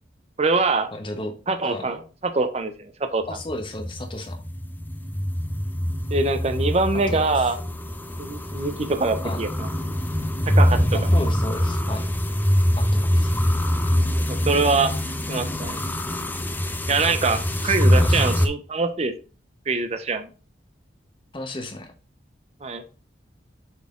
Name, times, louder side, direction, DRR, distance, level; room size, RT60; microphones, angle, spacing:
voice 1, 0.4-0.9 1.5-3.2 6.1-7.6 8.2-9.7 10.5-10.8 14.2-14.9 15.3-15.8 16.9-19.1 19.7-20.3 22.6-22.8, right 3 dB, 35° right, 8 dB, 0.6 m, -24 dB
voice 2, 0.9-1.3 1.6-1.9 3.3-4.4 6.9-7.5 9.2-9.4 10.9-12.1 12.8-13.3 17.6-18.2 21.3-21.9, left 1 dB, 30° left, 5 dB, 1.1 m, -34 dB
sound 1, 3.3-18.5, equal, 10° left, 0.6 m, -23 dB
7.2 x 4.1 x 3.7 m, 0.35 s
head